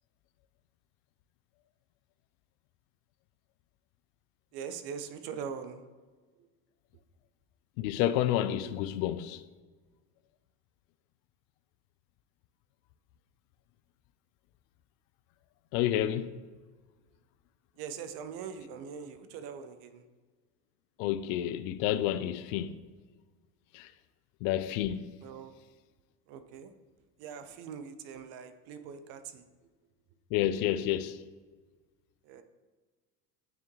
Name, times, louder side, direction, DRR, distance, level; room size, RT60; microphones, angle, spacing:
voice 1, 4.5-5.8 6.4-6.5 8.7-8.8 17.8-20.0 25.2-25.5 26.3-26.7 27.2-29.4 32.2-32.4, right 7 dB, 60° right, 0.7 m, -42 dB
voice 2, 7.8-9.4 15.7-16.3 21.0-22.7 23.7-23.9 24.4-25.1 30.3-31.2, left 12 dB, 70° left, 0.5 m, -29 dB
9.4 x 3.5 x 3.1 m
supercardioid pair, 95°, 42 cm